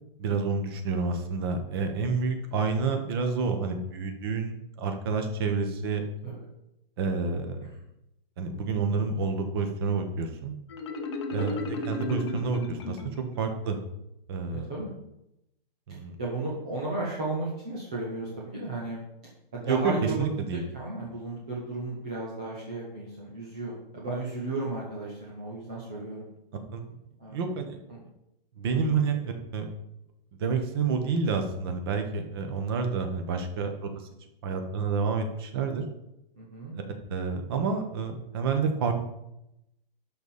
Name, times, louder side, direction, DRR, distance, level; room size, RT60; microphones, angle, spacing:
voice 1, 0.2-6.0 7.0-7.7 8.4-10.6 11.3-11.6 11.8-13.0 13.4-13.8 14.3-14.7 15.9-16.2 19.6-20.6 26.7-27.0 27.3-27.8 28.6-29.7 30.4-33.9 34.4-35.8 36.7-36.8 37.1-38.9, right 5 dB, 25° right, 5 dB, 1.2 m, -29 dB
Marimba xylophone, 10.7-13.5, left 3 dB, 30° left, 0.9 m, -35 dB
voice 2, 14.5-14.9 15.9-19.0 19.5-26.3 27.2-27.4 27.9-28.0 28.7-29.0 36.4-36.7, right 2 dB, 5° right, -6 dB, 0.4 m, -34 dB
11.5 x 4.2 x 7.1 m, 0.84 s
hypercardioid pair, 165°, 30 cm